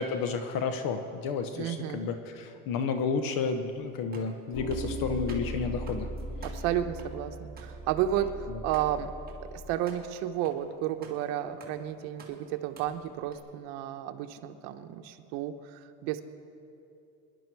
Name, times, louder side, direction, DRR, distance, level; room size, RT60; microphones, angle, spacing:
voice 1, 0.0-6.1 8.5-8.6, left 5 dB, 55° left, 8 dB, 1.0 m, -31 dB
voice 2, 1.5-2.1 6.4-9.1 9.4-16.2, right 11 dB, 75° right, 8 dB, 1.0 m, -32 dB
sound 1, 3.7-13.4, right 4 dB, 20° right, 2.1 m, -53 dB
sound 2, 4.5-9.6, equal, 75° left, 3.7 m, -38 dB
22.5 x 11.0 x 4.6 m, 2.7 s
cardioid pair, 135°, 42 cm